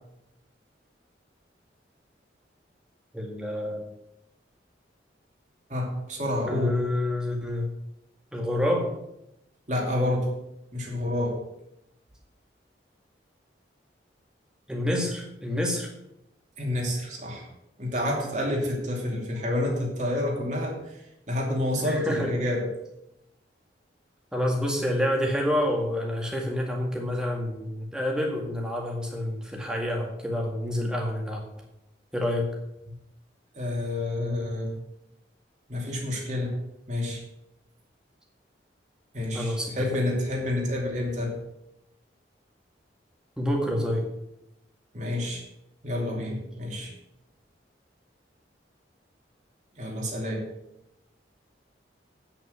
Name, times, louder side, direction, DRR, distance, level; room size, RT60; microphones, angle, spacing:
voice 1, 3.1-3.9 6.5-7.7 8.3-8.9 14.7-15.9 21.8-22.3 24.3-31.4 32.1-32.5 39.3-40.0 43.4-44.1, left 1 dB, 5° right, 0 dB, 1.9 m, -28 dB
voice 2, 5.7-6.8 9.7-10.3 10.7-11.4 16.6-17.5 17.8-22.7 33.5-34.8 35.7-36.5 36.9-37.2 39.1-41.4 44.9-45.4 45.8-46.9 49.8-50.5, left 1 dB, 40° right, -1 dB, 2.6 m, -29 dB
9.3 x 5.9 x 7.8 m, 0.84 s
head